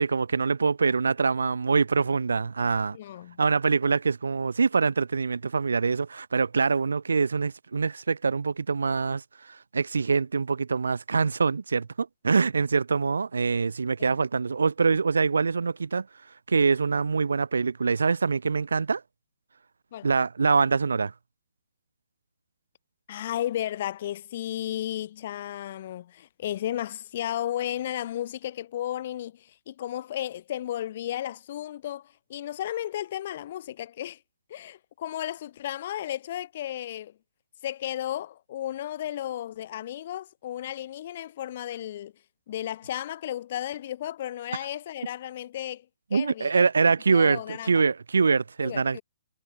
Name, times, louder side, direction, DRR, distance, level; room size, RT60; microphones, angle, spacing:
voice 1, 0.0-3.0 3.4-9.2 9.5-16.1 16.5-19.0 20.0-21.1 46.1-49.0, right 4 dB, 85° right, 2.3 m, -24 dB
voice 2, 2.9-3.4 14.0-14.1 19.9-20.1 23.1-34.2 34.5-37.1 37.6-42.1 42.5-45.8 46.1-46.7 47.1-47.8 48.6-49.0, left 12 dB, 45° left, 4.8 m, -34 dB
hypercardioid pair, 145°, 0 cm